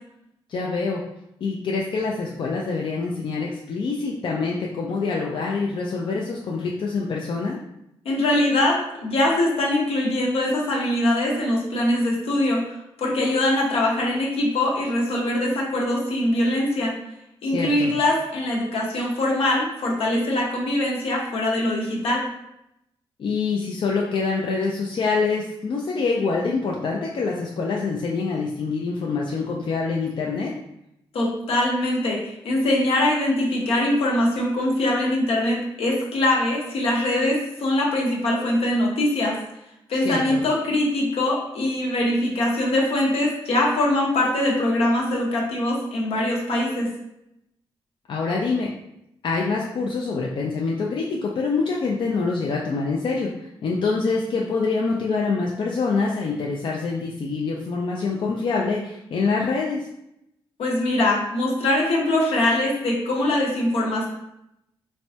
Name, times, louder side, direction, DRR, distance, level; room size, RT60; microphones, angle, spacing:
voice 1, 0.5-1.0 1.4-7.6 17.4-17.9 23.2-30.5 40.0-40.4 48.1-48.7 49.2-59.9, left 4 dB, 55° left, -2 dB, 0.4 m, -25 dB
voice 2, 8.0-12.6 13.0-16.9 17.4-22.2 31.1-32.2 32.4-39.4 39.9-46.9 60.6-64.1, left 1 dB, 75° left, -2 dB, 0.8 m, -22 dB
3.2 x 2.1 x 2.7 m, 0.83 s
cardioid pair, 70°, 10 cm